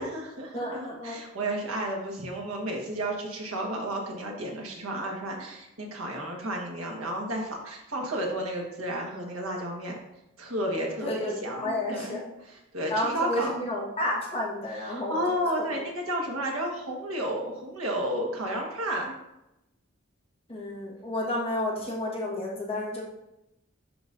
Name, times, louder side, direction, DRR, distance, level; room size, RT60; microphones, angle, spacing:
voice 1, 0.0-10.0 10.4-11.1 11.4-13.6 14.7-19.1, right 1 dB, 80° right, 0 dB, 1.5 m, -32 dB
voice 2, 0.5-1.2 11.0-12.3 12.9-15.8 20.5-23.0, left 1 dB, 30° left, -5 dB, 1.5 m, -31 dB
11.0 x 4.0 x 2.7 m, 0.88 s
head